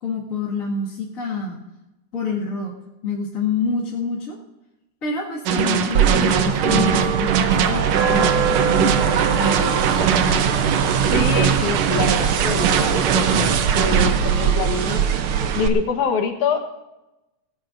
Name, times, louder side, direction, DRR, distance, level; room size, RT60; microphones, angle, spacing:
voice 1, 0.0-1.6 2.1-2.7 3.0-4.4 5.0-10.6, left 3 dB, 30° left, -5 dB, 2.0 m, -27 dB
sound 1, 5.5-14.2, right 7 dB, 70° right, 1.8 m, -23 dB
sound 2, 5.9-15.7, right 7 dB, 85° right, 1.1 m, -21 dB
voice 2, 11.1-16.6, left 6 dB, 75° left, 5 dB, 2.7 m, -26 dB
19.5 x 15.5 x 2.6 m, 0.98 s
omnidirectional pair, 3.5 m